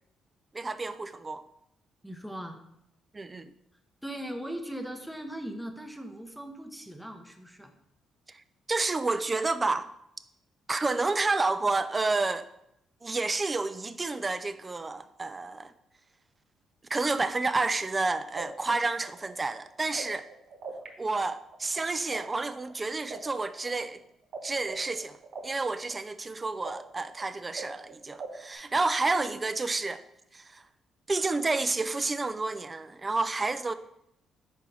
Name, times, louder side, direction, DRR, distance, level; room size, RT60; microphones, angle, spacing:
voice 1, 0.5-1.4 3.1-3.5 8.3-8.4 8.7-9.9 10.7-12.5 13.0-15.7 16.9-20.3 21.0-24.0 24.4-25.2 25.4-30.0 30.3-30.6 31.1-33.7, right 3 dB, 25° right, 0.4 m, -30 dB
voice 2, 2.0-2.6 4.0-7.7, right 1 dB, ahead, 0.8 m, -39 dB
sound 1, 18.4-20.9 21.1-24.4 24.6-28.5, right 5 dB, 70° right, 1.1 m, -42 dB
4.8 x 4.5 x 5.4 m
cardioid pair, 90°, 0 cm